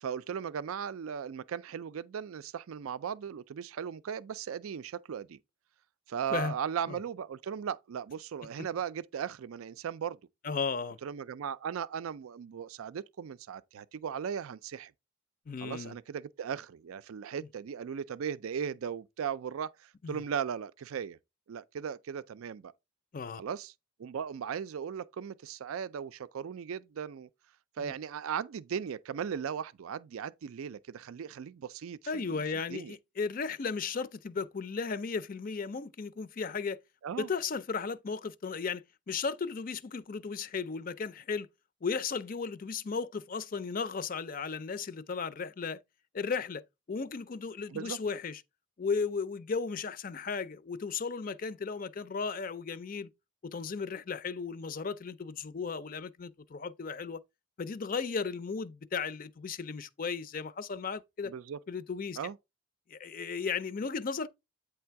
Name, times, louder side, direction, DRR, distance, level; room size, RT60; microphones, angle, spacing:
voice 1, 0.0-5.4 6.1-10.2 11.0-14.9 15.6-21.2 21.5-22.7 23.4-23.7 24.0-27.3 27.8-32.4 32.7-32.9 37.0-37.3 47.7-48.0 61.2-61.6 62.2-62.4, right 7 dB, 80° right, 0.4 m, -37 dB
voice 2, 10.4-11.0 15.5-15.9 20.0-20.2 23.1-23.4 27.8-27.9 32.1-36.8 37.2-41.5 41.8-45.8 46.1-46.6 46.9-48.4 48.8-53.1 53.4-57.2 57.6-61.3 61.7-62.2 62.9-64.3, left 5 dB, 40° left, 0.4 m, -35 dB
8.7 x 3.3 x 4.5 m
head